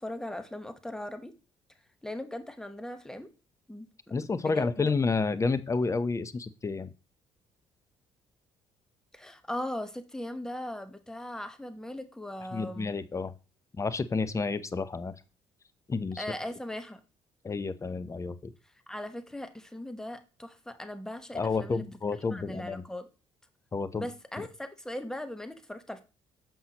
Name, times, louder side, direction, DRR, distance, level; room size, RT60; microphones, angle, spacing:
voice 1, 0.0-1.3 2.0-3.3 3.7-4.9 9.1-12.9 16.2-17.0 18.6-21.8 22.3-23.1 23.9-26.0, left 1 dB, 5° left, 9 dB, 1.0 m, -39 dB
voice 2, 4.1-6.9 12.5-13.3 13.8-15.1 15.9-16.2 17.4-18.5 21.3-22.8 23.7-24.1, left 4 dB, 25° left, 14 dB, 0.7 m, -30 dB
7.3 x 5.7 x 2.9 m, 0.32 s
supercardioid pair, 65°, 12 cm